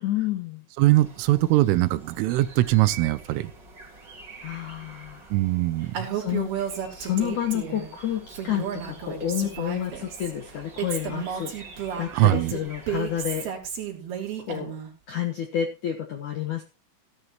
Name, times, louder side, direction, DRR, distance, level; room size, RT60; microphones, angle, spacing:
voice 1, 0.0-0.6 4.4-5.3 5.8-6.5 6.9-11.5 12.0-13.5 14.5-14.7 15.1-16.6, left 10 dB, 75° left, 4 dB, 1.8 m, -29 dB
sound 1, 0.8-13.4, right 3 dB, 25° right, 3.5 m, -47 dB
voice 2, 0.8-3.5 5.3-6.1 12.1-12.5, right 17 dB, 90° right, 15 dB, 3.4 m, -21 dB
Female speech woman speaking, 5.9-7.9 8.3-10.3 10.8-14.9, right 9 dB, 55° right, 5.0 m, -32 dB
17.0 x 11.5 x 3.0 m, 0.31 s
omnidirectional pair, 5.6 m